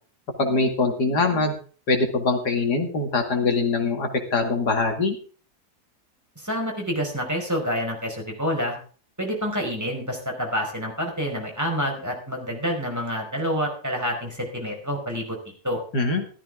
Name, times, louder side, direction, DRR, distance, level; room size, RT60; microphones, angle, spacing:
voice 1, 0.4-1.6 1.9-5.2 15.9-16.2, left 3 dB, 75° left, 5 dB, 2.9 m, -23 dB
voice 2, 6.4-8.8 9.2-15.8, equal, 10° right, 0 dB, 5.0 m, -28 dB
15.0 x 13.5 x 3.7 m, 0.39 s
omnidirectional pair, 1.8 m